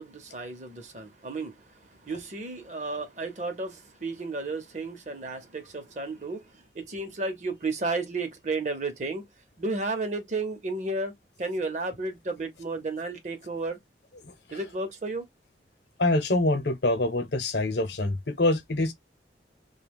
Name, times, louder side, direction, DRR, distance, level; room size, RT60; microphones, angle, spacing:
voice 1, 0.0-9.3 9.6-11.1 11.4-13.8 14.5-15.2, right 3 dB, 40° right, 0.7 m, -33 dB
voice 2, 14.2-14.6 16.0-18.9, left 2 dB, 75° left, 0.8 m, -25 dB
2.8 x 2.2 x 3.4 m
head